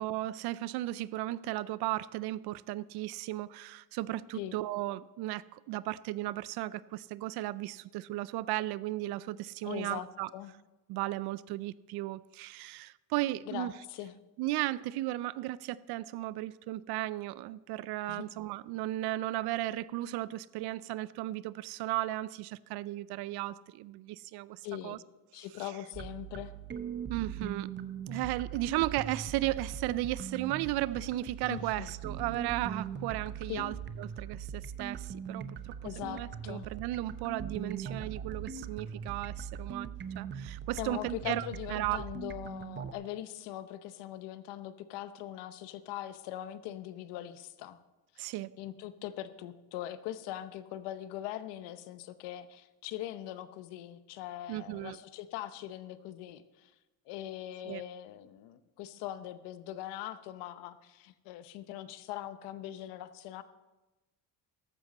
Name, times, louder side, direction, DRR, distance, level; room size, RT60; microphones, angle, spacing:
voice 1, 0.0-10.3 10.9-13.7 14.4-25.0 25.6-25.7 27.1-27.7 28.1-42.0 48.2-48.6 54.5-55.0 57.7-57.8, right 16 dB, 70° right, 0.5 m, -35 dB
voice 2, 9.6-10.1 10.3-10.5 13.5-14.1 18.1-18.3 24.6-25.0 25.3-26.5 31.5-31.9 33.5-33.7 35.8-36.7 40.8-47.8 48.2-48.3 48.6-56.7 57.1-63.4, left 13 dB, 80° left, 0.9 m, -41 dB
sound 1, 25.9-42.9, right 7 dB, 25° right, 0.7 m, -41 dB
sound 2, 33.1-41.0, right 9 dB, 85° right, 3.9 m, -61 dB
14.0 x 12.0 x 4.1 m
cardioid pair, 115°, 40 cm